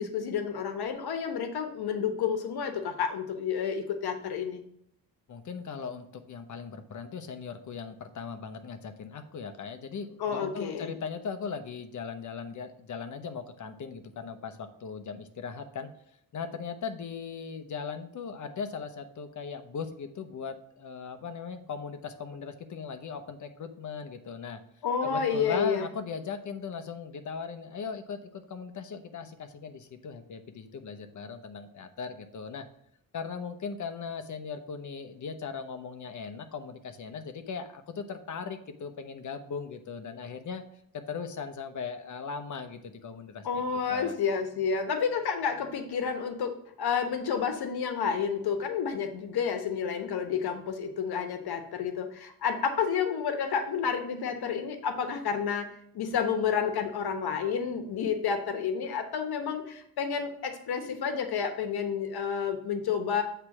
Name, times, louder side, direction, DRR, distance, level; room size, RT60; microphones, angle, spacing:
voice 1, 0.0-4.6 10.2-10.9 24.8-25.9 43.4-63.2, left 7 dB, 85° left, 6 dB, 1.1 m, -30 dB
voice 2, 5.3-15.9 16.3-24.6 25.0-32.7 33.1-40.6 40.9-43.5 43.9-44.2, left 5 dB, 50° left, 7 dB, 0.9 m, -38 dB
8.0 x 3.4 x 5.9 m, 0.70 s
wide cardioid pair, 145°, 37 cm